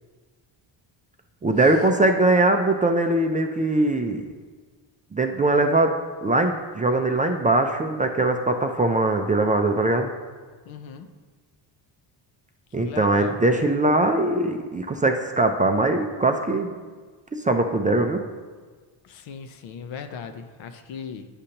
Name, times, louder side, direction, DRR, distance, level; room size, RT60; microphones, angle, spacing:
voice 1, 1.4-4.2 5.1-5.9 6.2-10.1 12.7-16.7 17.3-18.2, right 2 dB, 20° right, 4 dB, 0.3 m, -21 dB
voice 2, 10.7-11.1 12.8-13.4 19.0-21.3, left 6 dB, 75° left, 7 dB, 0.7 m, -38 dB
9.7 x 5.1 x 2.8 m, 1.4 s
cardioid pair, 90°, 46 cm